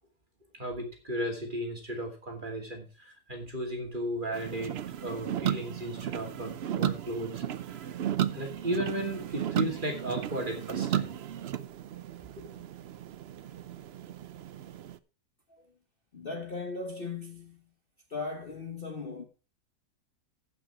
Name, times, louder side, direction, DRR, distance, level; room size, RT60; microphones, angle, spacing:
voice 1, 0.5-4.7 5.0-7.9 8.3-11.1 12.4-12.6, right 1 dB, 30° right, 2.7 m, -35 dB
sound 1, 4.3-15.0, right 10 dB, 70° right, 0.6 m, -34 dB
voice 2, 16.1-17.7 18.1-19.2, left 4 dB, 35° left, 1.3 m, -38 dB
15.0 x 5.9 x 4.7 m
omnidirectional pair, 1.8 m